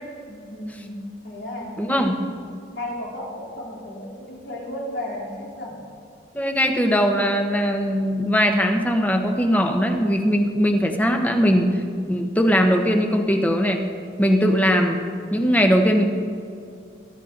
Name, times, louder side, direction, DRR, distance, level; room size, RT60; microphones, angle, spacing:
voice 1, 0.3-2.2 2.7-5.8, left 1 dB, 80° left, -4 dB, 4.0 m, -34 dB
voice 2, 1.8-2.1 6.3-11.7 12.1-13.8 14.2-15.0 15.3-16.0, equal, 10° left, 4 dB, 1.1 m, -20 dB
23.0 x 12.0 x 4.0 m, 2.4 s
head